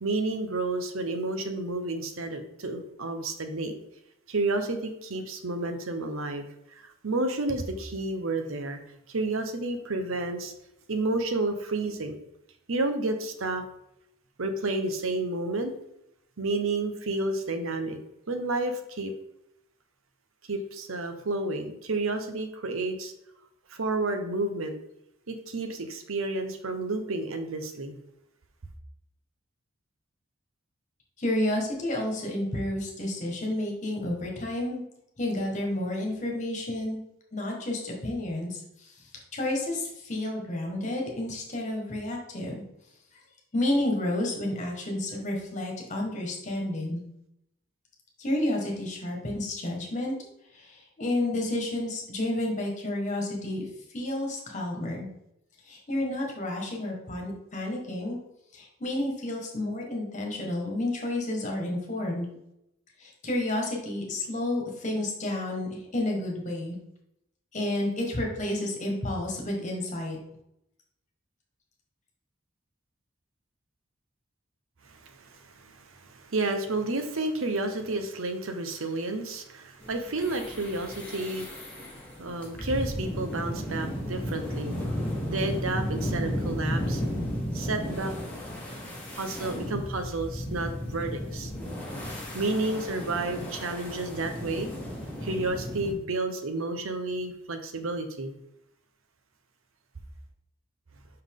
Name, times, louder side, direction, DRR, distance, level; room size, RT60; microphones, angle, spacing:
voice 1, 0.0-3.7 4.3-6.4 6.7-8.8 9.1-10.5 10.9-12.2 12.7-13.6 14.4-15.7 16.4-18.0 18.3-19.1 20.5-23.1 23.7-24.7 25.3-28.0 74.8-81.7 82.2-84.8 85.3-87.0 87.5-88.1 89.1-91.5 92.3-94.7 95.2-98.3, right 2 dB, 85° right, 7 dB, 0.8 m, -31 dB
voice 2, 31.2-34.8 35.2-37.0 37.3-42.6 43.5-47.0 48.2-50.1 50.5-53.6 53.9-55.1 55.7-58.2 58.5-62.3 63.0-66.8 67.5-70.2, left 1 dB, 35° left, 0 dB, 1.5 m, -30 dB
sound 1, 79.8-95.9, equal, 5° left, 1.4 m, -34 dB
5.6 x 5.5 x 3.7 m, 0.80 s
head